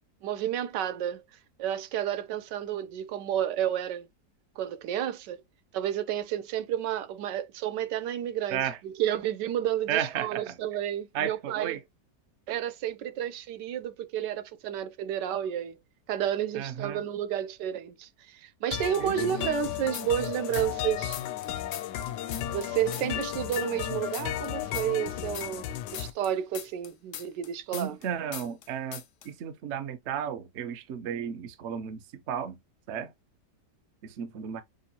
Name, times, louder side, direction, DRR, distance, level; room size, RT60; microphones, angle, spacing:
voice 1, 0.2-1.2 1.6-4.1 4.6-5.4 5.7-11.8 12.5-15.8 16.1-21.2 22.5-28.0, right 10 dB, 85° right, 1.2 m, -31 dB
voice 2, 9.9-10.6 11.1-11.8 16.5-17.0 19.0-19.3 27.7-32.6 32.9-33.1 34.0-34.6, right 9 dB, 60° right, 0.7 m, -33 dB
sound 1, 18.7-26.1, left 11 dB, 80° left, 1.2 m, -34 dB
sound 2, 19.9-20.9 21.1-23.9 24.1-28.1 28.3-28.7 28.9-29.3, left 10 dB, 65° left, 0.8 m, -40 dB
6.4 x 2.5 x 2.8 m
omnidirectional pair, 1.8 m